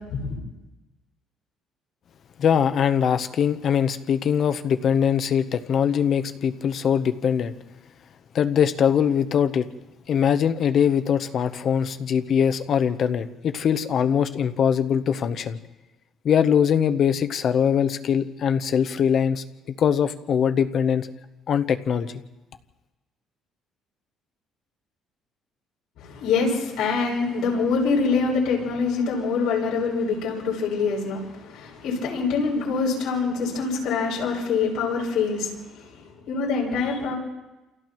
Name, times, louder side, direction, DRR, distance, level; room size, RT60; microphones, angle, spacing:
voice 1, 2.4-7.5 8.3-9.7 10.1-15.6 16.2-19.4 19.8-21.1 21.5-22.2, left 8 dB, 50° left, 10 dB, 0.9 m, -22 dB
voice 2, 26.0-37.1, left 4 dB, 75° left, -3 dB, 7.5 m, -25 dB
28.5 x 28.5 x 3.1 m, 1.1 s
cardioid pair, 130°, 0 cm